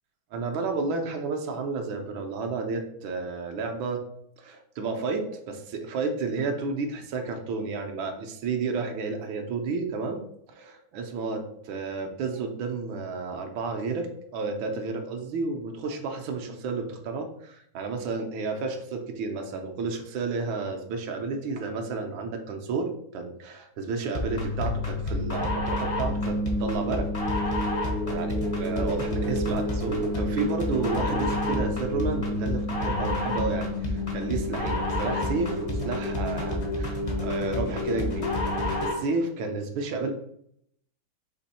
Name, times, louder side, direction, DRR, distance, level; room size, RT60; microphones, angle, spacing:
voice 1, 0.3-4.0 4.4-10.2 10.5-14.1 14.3-27.0 27.5-27.7 28.0-38.3 38.6-40.1, right 4 dB, 75° right, 4 dB, 1.4 m, -31 dB
sound 1, 24.1-39.1, left 1 dB, 40° left, 0.5 m, -28 dB
4.3 x 3.0 x 4.1 m, 0.71 s
omnidirectional pair, 2.2 m